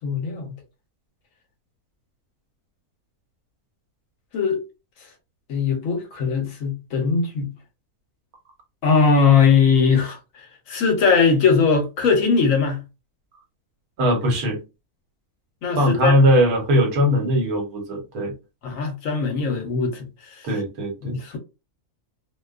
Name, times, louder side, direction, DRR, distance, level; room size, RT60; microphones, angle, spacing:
voice 1, 0.0-0.6 4.3-4.7 5.5-7.5 8.8-12.8 15.6-16.1 18.6-20.5 21.0-21.4, left 5 dB, 65° left, 0.9 m, -20 dB
voice 2, 14.0-14.6 15.8-18.3 20.4-21.2, equal, 75° right, 1.3 m, -20 dB
2.5 x 2.2 x 2.3 m
omnidirectional pair, 1.6 m